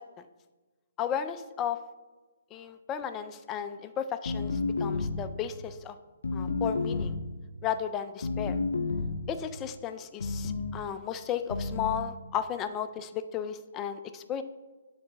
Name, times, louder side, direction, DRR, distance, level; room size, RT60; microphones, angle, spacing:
voice 1, 1.0-1.8 2.5-6.0 6.3-7.2 7.6-8.6 9.3-14.4, left 9 dB, 20° left, 10 dB, 0.3 m, -34 dB
sound 1, 4.3-5.4 6.2-7.3 8.2-9.3 10.2-10.8 11.5-12.1, left 3 dB, 80° left, 0.6 m, -31 dB
8.4 x 4.0 x 3.9 m, 1.2 s
hypercardioid pair, 150°, 0 cm